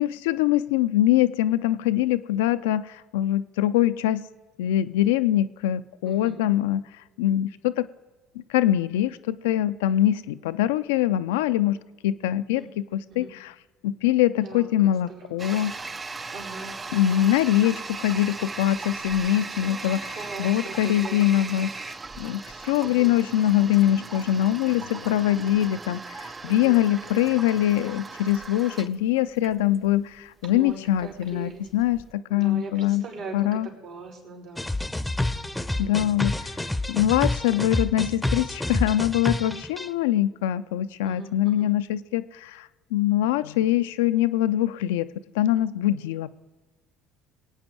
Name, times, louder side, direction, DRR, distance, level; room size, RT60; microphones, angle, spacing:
voice 1, 0.0-4.2 4.6-6.8 7.2-7.9 8.5-13.5 13.8-15.7 16.9-21.7 22.2-33.0 33.3-33.7 35.8-36.5 36.9-45.1 45.3-46.3, left 13 dB, 75° left, 13 dB, 0.4 m, -23 dB
voice 2, 6.0-6.4 12.6-12.7 13.1-13.3 14.3-15.4 16.3-17.4 19.6-21.7 22.8-23.2 26.5-26.8 27.1-27.2 30.5-31.7 32.3-34.7 35.8-36.1 41.0-41.7, right 3 dB, 70° right, -5 dB, 4.7 m, -41 dB
Toilet flush, 15.4-32.1, right 3 dB, 25° right, 0.5 m, -38 dB
sound 1, 34.6-39.9, left 1 dB, 5° left, 0.7 m, -28 dB
23.0 x 8.8 x 4.6 m, 1.3 s
hypercardioid pair, 65°, 0 cm